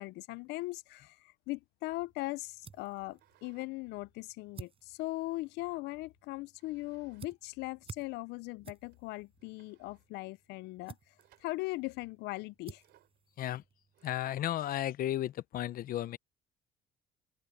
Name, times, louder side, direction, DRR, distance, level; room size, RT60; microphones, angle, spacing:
voice 1, 0.0-11.0 11.4-12.8, left 20 dB, 85° left, 0.4 m, -39 dB
sound 1, 2.0-14.2, right 6 dB, 35° right, 7.1 m, -55 dB
sound 2, 3.1-3.7 4.1-5.5 6.5-7.3 7.6-7.7 8.4-8.5 8.9-9.0 9.4-10.1 11.2-11.8 12.8-13.2 13.9-14.5, right 14 dB, 75° right, 3.5 m, -68 dB
voice 2, 14.0-16.2, left 12 dB, 60° left, 0.8 m, -34 dB
open air
cardioid pair, 110°, 17 cm